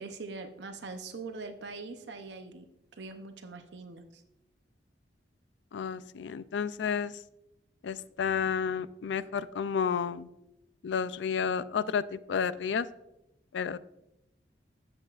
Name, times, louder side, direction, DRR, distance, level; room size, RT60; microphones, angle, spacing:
voice 1, 0.0-2.7 2.9-4.2, right 3 dB, 80° right, 7 dB, 0.7 m, -42 dB
voice 2, 5.7-7.2 7.8-10.3 10.8-12.9 13.5-13.8, left 6 dB, 85° left, 16 dB, 0.4 m, -31 dB
11.5 x 7.8 x 2.4 m, 0.88 s
head